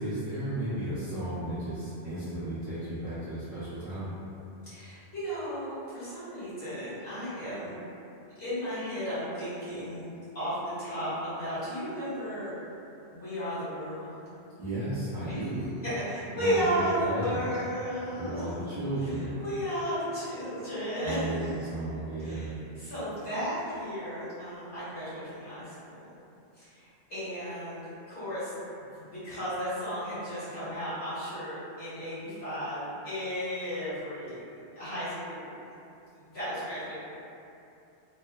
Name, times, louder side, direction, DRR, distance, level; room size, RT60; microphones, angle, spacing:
voice 1, 0.0-4.2 14.6-15.7 16.3-16.6 17.0-17.4 18.1-19.4 21.0-22.6, right 1 dB, 40° right, -15 dB, 0.6 m, -34 dB
voice 2, 4.7-7.7 8.4-10.1 10.3-12.5 13.1-14.2 15.3-15.4 15.8-18.5 19.0-21.3 22.2-25.9 26.6-28.5 29.0-35.5 36.2-36.9, equal, 65° left, -15 dB, 1.6 m, -34 dB
3.1 x 2.1 x 2.3 m, 2.7 s
omnidirectional pair, 1.2 m